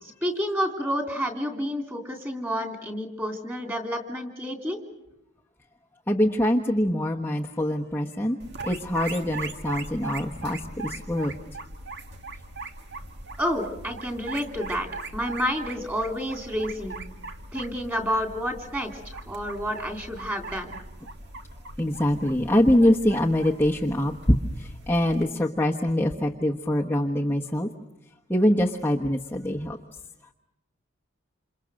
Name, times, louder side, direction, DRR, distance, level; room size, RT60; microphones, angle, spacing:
voice 1, 0.0-4.8 13.4-14.9 15.1-17.0 17.5-20.8, equal, 10° right, 4 dB, 3.3 m, -29 dB
voice 2, 6.1-8.4 8.6-11.3 21.8-27.7 28.3-29.8, left 1 dB, 10° left, -1 dB, 1.1 m, -24 dB
sound 1, 8.4-25.2, right 3 dB, 50° right, 1.9 m, -40 dB
28.5 x 28.0 x 6.4 m, 0.89 s
head